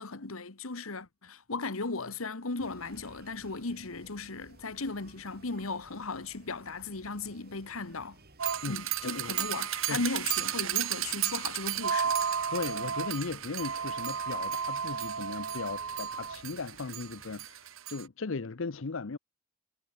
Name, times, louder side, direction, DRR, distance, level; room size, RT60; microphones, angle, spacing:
voice 1, 0.0-8.2 8.7-12.1, left 3 dB, 85° left, 1.6 m, -37 dB
sound 1, 2.6-17.4, right 2 dB, 50° right, 5.1 m, -57 dB
sound 2, 8.4-18.0, right 8 dB, 75° right, 1.2 m, -33 dB
voice 2, 8.6-9.4 9.9-10.0 12.5-19.2, left 4 dB, 65° left, 0.7 m, -37 dB
head